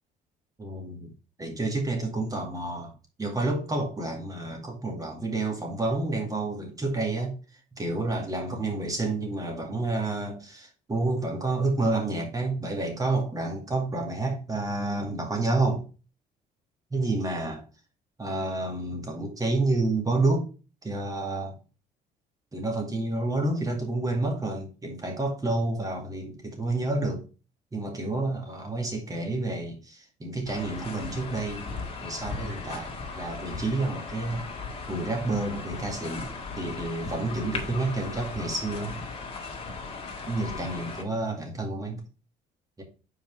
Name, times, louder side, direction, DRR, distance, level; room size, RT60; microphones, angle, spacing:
voice 1, 0.6-2.9 3.2-7.4 7.7-15.8 16.9-17.6 18.2-20.5 20.8-21.6 22.5-27.2 27.7-31.7 32.0-34.4 34.9-39.0 40.3-42.0 42.8-42.9, right 2 dB, 20° right, 2 dB, 2.2 m, -29 dB
sound 1, 30.4-41.0, left 4 dB, 35° left, 1.8 m, -37 dB
5.6 x 4.5 x 4.7 m, 0.34 s
cardioid pair, 110°, 17 cm